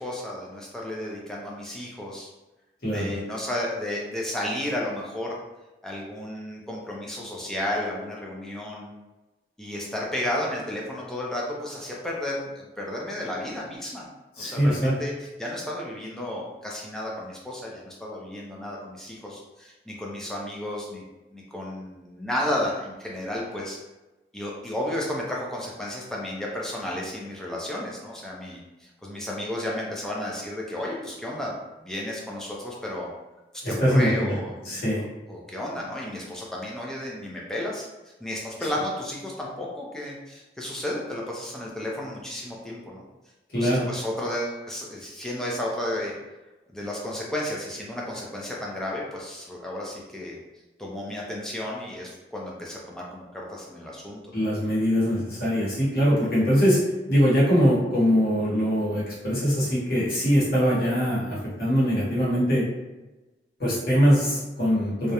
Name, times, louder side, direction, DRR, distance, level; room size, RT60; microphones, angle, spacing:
voice 1, 0.0-2.3 2.9-5.3 5.8-8.9 9.6-14.1 14.4-15.1 15.4-21.0 21.3-23.8 24.3-31.5 31.8-33.1 33.7-34.5 35.3-37.9 38.2-43.0 43.6-46.1 46.7-50.4 50.8-54.2 56.2-56.3, left 1 dB, 5° left, -4 dB, 0.4 m, -32 dB
voice 2, 14.4-14.9 33.6-34.3 34.6-35.0 43.5-43.9 54.3-56.8 57.1-62.7 63.6-65.1, equal, 55° left, -8 dB, 1.0 m, -22 dB
2.3 x 2.0 x 2.8 m, 1.1 s
head